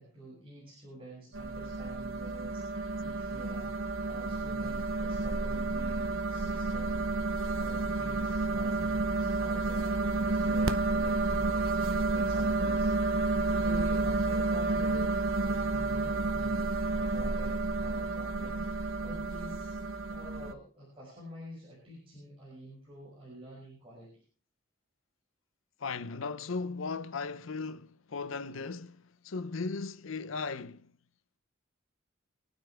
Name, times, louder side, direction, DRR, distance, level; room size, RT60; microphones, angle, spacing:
voice 1, 0.0-19.8 20.1-24.2, right 1 dB, 30° right, 7.3 m, -48 dB
sound 1, 1.3-20.5, right 3 dB, 90° right, 1.0 m, -30 dB
voice 2, 25.8-29.0 29.2-30.9, left 4 dB, 80° left, 0.6 m, -37 dB
26.5 x 9.4 x 3.4 m
head